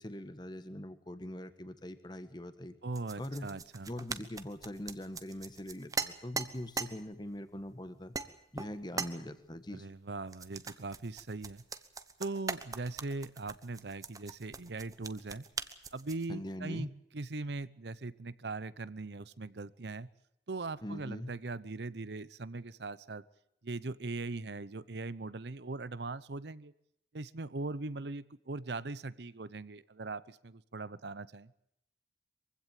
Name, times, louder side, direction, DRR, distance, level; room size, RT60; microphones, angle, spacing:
voice 1, 0.0-2.7 3.2-3.5 3.9-8.1 8.5-9.9 16.3-16.9 20.8-21.3, left 1 dB, 25° left, 11 dB, 1.4 m, -42 dB
voice 2, 2.8-3.9 9.7-11.6 12.2-15.4 15.9-20.1 20.5-23.2 23.6-26.7 27.1-31.5, right 3 dB, 75° right, 17 dB, 0.8 m, -40 dB
sound 1, 2.9-6.9 7.6-7.7 8.1-8.3 8.6-9.1 10.3-16.3, right 4 dB, 20° right, 1.0 m, -40 dB
23.5 x 16.0 x 9.1 m, 0.78 s
head